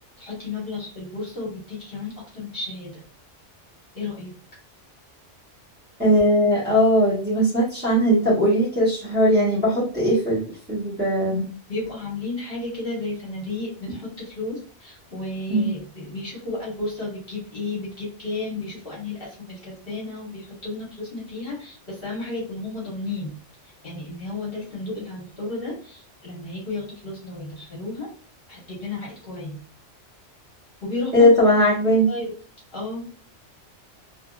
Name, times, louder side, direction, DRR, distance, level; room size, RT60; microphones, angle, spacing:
voice 1, 0.2-3.0 3.9-4.4 11.7-23.4 23.6-28.1 28.5-29.6 30.8-31.3 31.9-32.3 32.7-33.1, left 2 dB, 55° left, -4 dB, 1.1 m, -33 dB
voice 2, 6.0-10.4 10.7-11.5 15.5-15.7 31.1-32.1, equal, 10° right, -8 dB, 1.1 m, -19 dB
2.7 x 2.6 x 2.3 m, 0.41 s
omnidirectional pair, 1.3 m